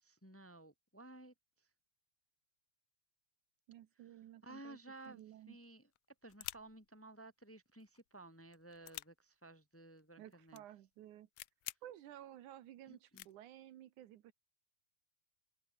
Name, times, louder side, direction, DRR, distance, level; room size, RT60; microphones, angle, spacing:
voice 1, 0.0-1.7 4.4-5.9 6.2-10.6 12.9-13.3, right 2 dB, 5° left, 1.8 m, -56 dB
voice 2, 3.7-4.8 5.1-5.6 10.2-11.3 11.8-14.3, right 12 dB, 75° right, 2.5 m, -54 dB
sound 1, 4.9-5.3 5.6-5.7 5.9-6.9 7.7-8.1 8.4-9.1 10.0-10.1 10.3-10.6 10.9-11.0 11.4-11.8 12.4-12.5 13.1-13.3, left 20 dB, 90° left, 1.5 m, -49 dB
open air
omnidirectional pair, 3.7 m